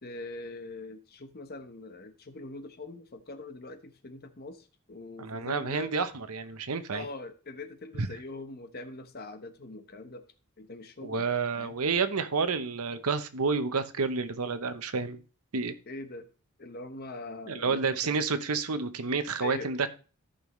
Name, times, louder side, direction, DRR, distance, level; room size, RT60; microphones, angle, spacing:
voice 1, 0.0-5.9 6.9-10.3 10.6-11.2 11.5-11.8 15.9-16.3 16.6-18.2 19.4-19.7, left 2 dB, 45° left, 8 dB, 1.0 m, -42 dB
voice 2, 5.2-7.0 8.0-8.1 11.0-15.2 15.5-15.8 17.5-19.9, right 4 dB, 80° right, 11 dB, 0.8 m, -30 dB
14.0 x 5.6 x 3.1 m, 0.37 s
head